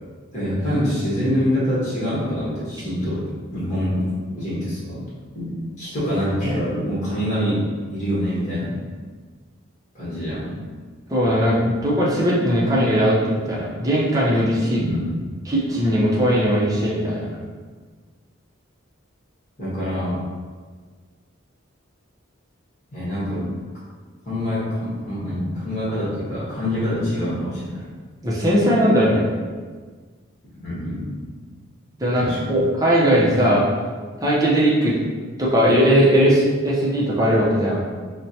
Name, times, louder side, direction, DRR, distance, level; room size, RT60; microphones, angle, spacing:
voice 1, 0.3-3.2 3.5-4.0 4.3-5.0 5.3-7.6 7.9-8.8 9.9-10.5 14.8-15.2 19.6-20.2 22.9-23.5 24.2-27.8 30.6-31.1 32.2-32.6, equal, 35° left, -10 dB, 1.2 m, -25 dB
voice 2, 11.1-14.8 15.5-17.3 28.2-29.3 32.0-33.6 34.2-35.0 35.4-37.8, equal, 15° right, -5 dB, 0.6 m, -19 dB
4.4 x 2.2 x 2.7 m, 1.5 s
head